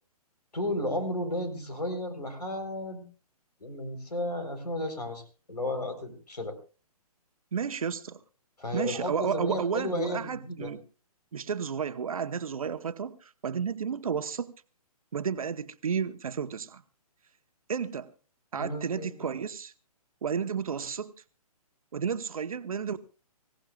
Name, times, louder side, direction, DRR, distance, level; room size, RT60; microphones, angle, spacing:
voice 1, 0.5-3.0 3.6-5.2 5.5-6.5 8.6-10.7 18.6-19.3, left 1 dB, 85° left, 4.1 m, -33 dB
voice 2, 7.5-8.2 8.7-10.8 11.3-14.5 15.1-16.8 17.7-18.1 18.5-19.7 20.2-21.1 21.9-23.0, right 6 dB, 60° right, 1.1 m, -32 dB
25.0 x 17.0 x 2.4 m
figure-of-eight pair, 135°, 20 cm